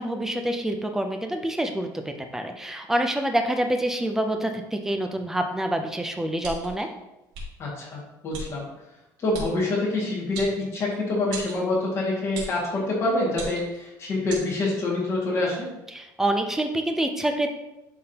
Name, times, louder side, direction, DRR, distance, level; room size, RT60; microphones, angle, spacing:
voice 1, 0.0-6.9 15.9-17.5, right 1 dB, 5° right, 5 dB, 0.5 m, -27 dB
sound 1, 6.4-6.8 7.3-7.5 8.3-8.5 9.3-9.5 10.3-10.9 11.3-11.6 12.3-12.6 13.3-13.8 14.3-14.5, right 1 dB, 90° right, 2.2 m, -36 dB
voice 2, 7.6-8.7 9.2-15.7, left 2 dB, 35° left, -4 dB, 2.1 m, -26 dB
10.5 x 3.6 x 2.9 m, 0.94 s
cardioid pair, 165°, 8 cm